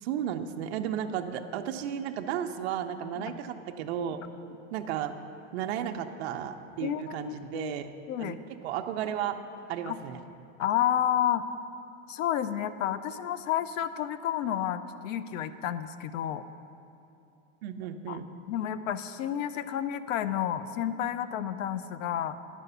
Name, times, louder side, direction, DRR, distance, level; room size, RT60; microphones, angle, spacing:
voice 1, 0.0-4.2 4.7-5.1 5.5-7.9 8.2-8.4 8.6-9.3 9.7-10.2 17.6-18.2, right 9 dB, 55° right, 6 dB, 0.6 m, -33 dB
voice 2, 6.8-7.7 8.1-8.4 9.9-10.0 10.6-11.5 12.1-16.4 18.1-18.2 18.5-22.4, left 10 dB, 85° left, 13 dB, 0.6 m, -30 dB
10.5 x 5.0 x 6.7 m, 2.7 s
supercardioid pair, 170°, 38 cm